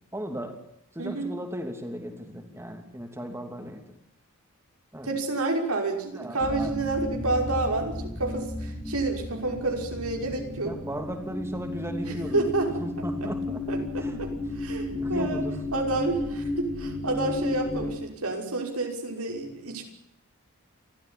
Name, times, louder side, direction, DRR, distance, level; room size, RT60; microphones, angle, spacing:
voice 1, 0.1-0.6 0.9-4.0 4.9-5.1 6.1-6.7 10.2-12.5 12.8-13.6 14.0-14.2 14.9-15.6, equal, 10° right, 4 dB, 2.9 m, -36 dB
voice 2, 1.0-1.3 5.0-10.8 12.0-12.9 13.2-13.3 13.7-14.3 14.6-15.5 15.7-19.8, right 2 dB, 90° right, 2 dB, 5.7 m, -29 dB
sound 1, 6.4-17.9, left 2 dB, 5° left, 3.8 m, -33 dB
29.5 x 14.0 x 10.0 m, 0.79 s
head